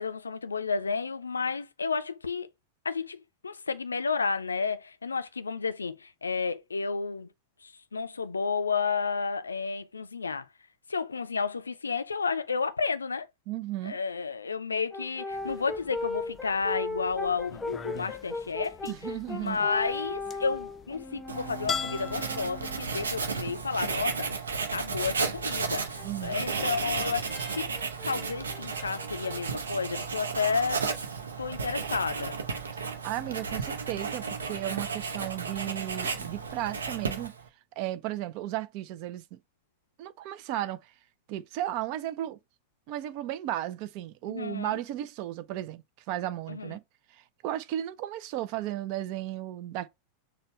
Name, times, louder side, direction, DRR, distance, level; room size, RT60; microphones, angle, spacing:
voice 1, 0.0-2.5 2.8-7.3 7.6-10.5 10.9-13.3 13.8-18.9 19.3-24.3 24.7-27.3 27.5-27.7 28.1-30.8 31.4-32.4 44.3-44.8 46.5-46.8, left 5 dB, 75° left, 0.4 m, -31 dB
voice 2, 13.5-14.0 18.9-19.7 26.0-26.3 32.7-37.3 37.8-39.4 40.0-40.9 41.3-42.4 42.9-46.8 47.1-49.9, right 13 dB, 45° right, 0.5 m, -35 dB
Brass instrument, 14.9-23.2 25.7-29.4, left 3 dB, 5° left, 0.8 m, -38 dB
sound 1, 15.3-27.4, left 5 dB, 20° left, 0.4 m, -44 dB
Writing, 21.3-37.5, right 5 dB, 70° right, 0.7 m, -33 dB
6.5 x 2.2 x 3.1 m
figure-of-eight pair, 90°, 0 cm